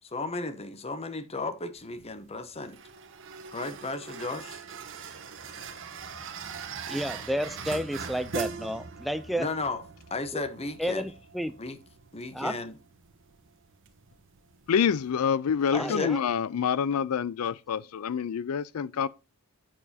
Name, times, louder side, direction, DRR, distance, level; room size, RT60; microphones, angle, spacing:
voice 1, 0.0-2.8 3.5-4.6 9.4-9.8 10.1-11.1 11.6-11.8 12.1-12.7 15.7-16.1, left 3 dB, 30° left, 0.9 m, -34 dB
sound 1, 1.8-15.1, right 5 dB, 60° right, 1.2 m, -42 dB
voice 2, 6.9-9.5 10.3-10.4 10.8-11.6 12.3-12.6 15.7-16.2, equal, ahead, 0.3 m, -31 dB
voice 3, 14.7-19.1, left 7 dB, 75° left, 0.4 m, -27 dB
8.7 x 6.8 x 2.7 m
head